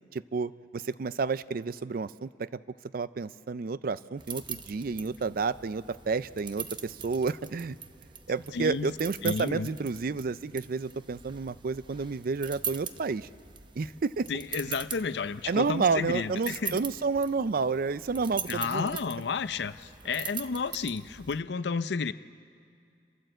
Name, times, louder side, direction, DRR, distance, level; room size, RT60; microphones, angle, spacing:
voice 1, 0.1-2.5 2.9-7.8 8.3-13.3 13.8-14.3 15.5-19.0, right 4 dB, 55° right, 16 dB, 0.4 m, -30 dB
sound 1, 4.2-21.4, right 6 dB, 25° right, 0.8 m, -42 dB
voice 2, 8.5-8.9 9.2-9.7 14.3-16.8 18.5-22.1, left 5 dB, 70° left, 14 dB, 0.5 m, -32 dB
29.0 x 13.5 x 7.8 m, 2.3 s
head